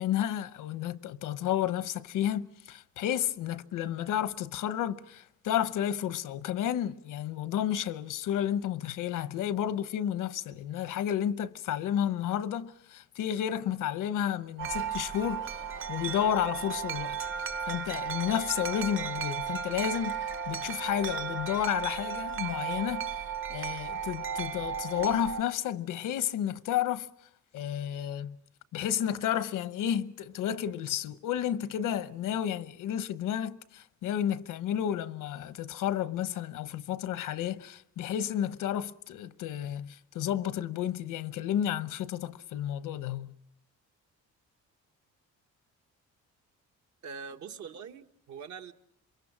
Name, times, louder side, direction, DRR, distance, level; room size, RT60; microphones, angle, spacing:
voice 1, 0.0-23.2 23.5-27.1 27.5-28.4 28.7-43.4, left 10 dB, 85° left, 0.9 m, -31 dB
Wind chime, 14.6-25.4, right 7 dB, 40° right, 0.9 m, -35 dB
voice 2, 47.0-48.7, right 6 dB, 65° right, 1.3 m, -43 dB
27.0 x 23.0 x 6.1 m
cardioid pair, 135°, 31 cm